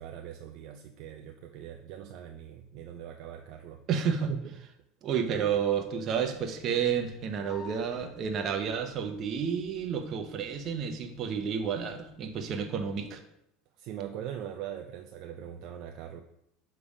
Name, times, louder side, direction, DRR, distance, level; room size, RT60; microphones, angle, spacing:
voice 1, 0.0-3.8 4.3-4.6 13.8-16.2, right 10 dB, 60° right, 4 dB, 0.5 m, -41 dB
voice 2, 3.9-4.3 5.0-13.2, right 7 dB, 45° right, 6 dB, 0.9 m, -30 dB
sound 1, 5.2-13.1, left 4 dB, 50° left, 2.0 m, -54 dB
7.1 x 3.5 x 4.9 m, 0.79 s
supercardioid pair, 110°, 0 cm